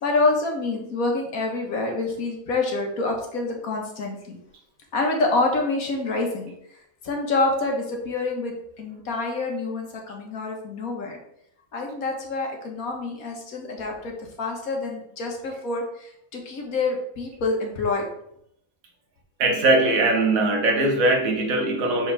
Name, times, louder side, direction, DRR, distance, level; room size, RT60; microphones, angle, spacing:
voice 1, 0.0-4.2 4.9-6.5 7.0-11.2 11.7-18.1, left 3 dB, 75° left, 1 dB, 1.7 m, -27 dB
voice 2, 19.4-22.1, right 2 dB, 70° right, 3 dB, 1.5 m, -20 dB
5.9 x 5.1 x 3.4 m, 0.74 s
omnidirectional pair, 1.5 m